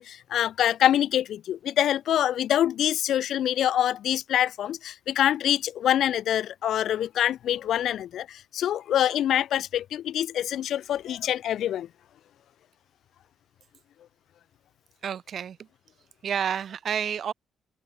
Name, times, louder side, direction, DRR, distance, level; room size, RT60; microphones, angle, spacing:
voice 1, 0.0-11.9, left 11 dB, 65° left, 0.7 m, -25 dB
voice 2, 15.0-15.7 16.2-17.3, right 8 dB, 45° right, 2.0 m, -30 dB
open air
cardioid pair, 155°, 0 cm